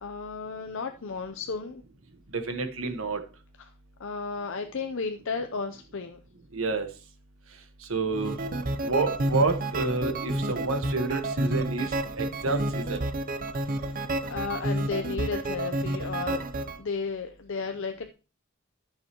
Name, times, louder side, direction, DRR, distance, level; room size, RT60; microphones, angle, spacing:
voice 1, 0.0-1.8 4.0-6.2 13.7-18.1, left 4 dB, 60° left, 6 dB, 0.6 m, -34 dB
voice 2, 2.3-3.2 6.5-6.9 7.9-8.4 8.8-13.0, right 3 dB, 70° right, 6 dB, 1.4 m, -29 dB
sound 1, 8.1-16.8, right 1 dB, 40° right, 0.7 m, -30 dB
14.5 x 6.5 x 3.0 m, 0.35 s
head